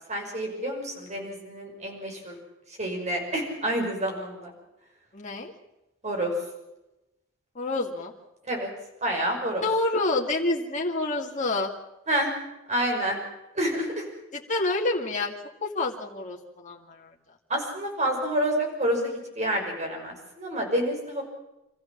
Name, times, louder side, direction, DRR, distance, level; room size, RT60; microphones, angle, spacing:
voice 1, 0.1-2.4 2.8-4.5 6.0-6.3 8.5-8.7 9.0-9.6 12.1-12.3 12.7-13.2 13.5-14.1 17.5-21.2, right 1 dB, 35° right, 1 dB, 5.9 m, -28 dB
voice 2, 5.1-5.5 7.5-8.1 9.6-11.7 14.3-15.3 15.6-17.1, left 2 dB, 35° left, -1 dB, 2.2 m, -28 dB
26.0 x 15.0 x 7.3 m, 0.96 s
head